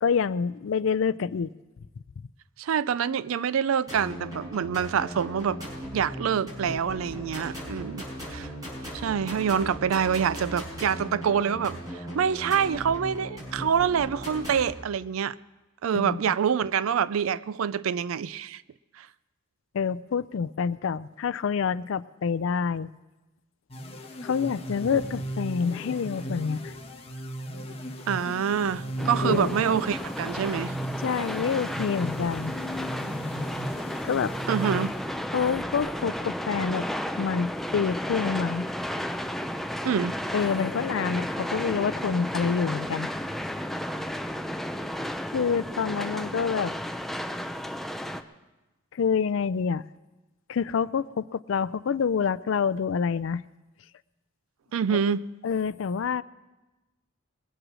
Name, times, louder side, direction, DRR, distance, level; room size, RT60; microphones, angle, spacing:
voice 1, 0.0-1.5 15.9-16.2 19.7-22.9 24.2-26.7 29.2-29.6 31.0-32.6 34.0-34.3 35.3-36.9 37.2-38.7 40.3-43.1 45.3-46.7 48.9-49.8 50.5-53.4 54.9-55.0 55.4-56.2, left 6 dB, 65° left, 0.4 m, -27 dB
voice 2, 2.6-5.6 5.9-8.0 8.3-8.5 8.9-11.8 12.1-15.3 15.8-18.6 19.0-19.1 28.1-30.7 34.5-34.9 39.8-40.2 54.7-55.2, right 7 dB, 85° right, 0.4 m, -26 dB
sound 1, 3.9-14.7, equal, 20° right, 5.0 m, -38 dB
sound 2, 23.7-35.5, equal, 30° left, 1.1 m, -36 dB
sound 3, 29.0-48.2, equal, ahead, 0.5 m, -33 dB
21.0 x 7.9 x 6.2 m
head